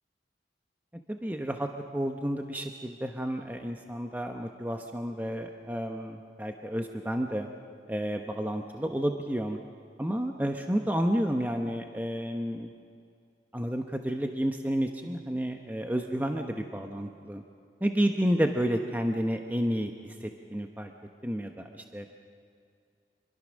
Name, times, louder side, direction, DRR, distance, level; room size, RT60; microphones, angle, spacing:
voice 1, 1.1-7.5 7.9-9.6 10.0-12.7 13.5-17.4 17.8-20.9 21.2-22.0, equal, 10° right, 4 dB, 1.0 m, -31 dB
27.0 x 23.0 x 6.4 m, 2.3 s
head